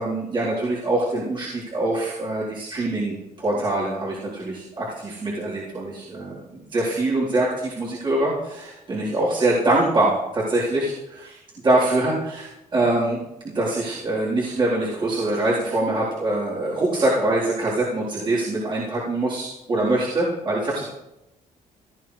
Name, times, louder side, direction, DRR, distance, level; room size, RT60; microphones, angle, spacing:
voice 1, 0.0-20.8, right 2 dB, 35° right, -8 dB, 4.1 m, -24 dB
17.5 x 13.0 x 3.4 m, 0.91 s
cardioid pair, 120°, 13 cm